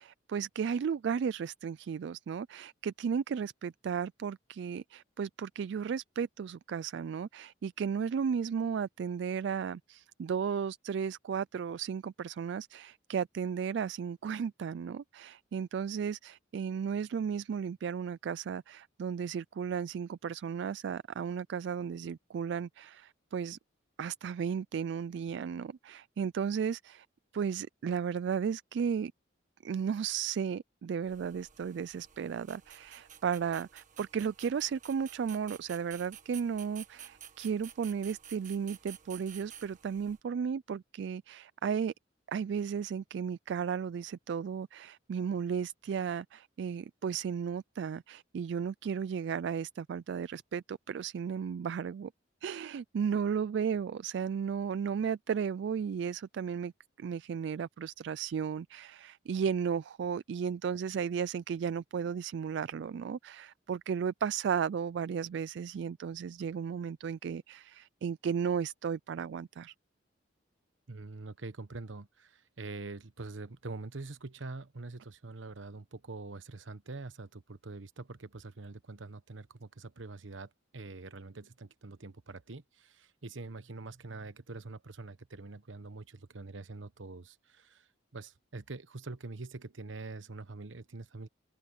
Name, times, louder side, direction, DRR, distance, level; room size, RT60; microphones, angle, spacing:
voice 1, 0.0-23.6 24.0-27.1 27.3-29.1 29.6-41.9 42.3-52.1 52.4-56.7 57.0-69.7, right 7 dB, 65° right, 0.3 m, -34 dB
sound 1, 31.0-40.2, right 10 dB, 40° right, 1.6 m, -52 dB
voice 2, 70.9-91.3, right 3 dB, 80° right, 1.1 m, -45 dB
head